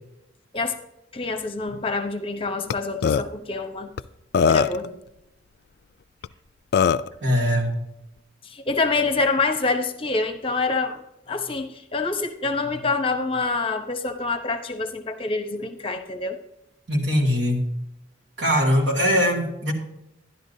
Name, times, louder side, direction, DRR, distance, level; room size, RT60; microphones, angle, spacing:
voice 1, 1.1-3.9 4.5-5.0 8.5-11.0 11.3-16.4, left 3 dB, 30° left, 7 dB, 0.8 m, -26 dB
Burping eructation, 2.7-2.8 3.0-3.2 4.0-4.1 4.3-4.9 6.2-6.3 6.7-7.1, left 6 dB, 55° left, 0.3 m, -19 dB
voice 2, 7.2-7.8 16.9-17.6 18.4-19.7, equal, 70° right, 0 dB, 2.3 m, -21 dB
12.0 x 11.0 x 2.7 m, 0.85 s
head